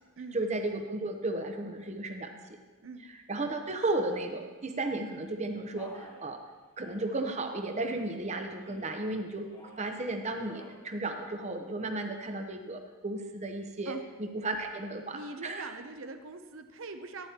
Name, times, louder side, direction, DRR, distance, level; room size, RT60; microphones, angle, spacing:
voice 1, 0.3-2.3 3.3-6.4 6.8-9.5 9.8-15.7, right 2 dB, 30° right, 5 dB, 0.8 m, -34 dB
Male speech man speaking, 5.8-6.2 6.8-7.2 7.8-8.2 8.6-9.0 9.4-9.9 10.3-10.8, left 1 dB, 20° left, 1.1 m, -50 dB
voice 2, 15.1-17.3, right 3 dB, 60° right, 7 dB, 0.7 m, -42 dB
13.5 x 9.7 x 2.9 m, 1.3 s
head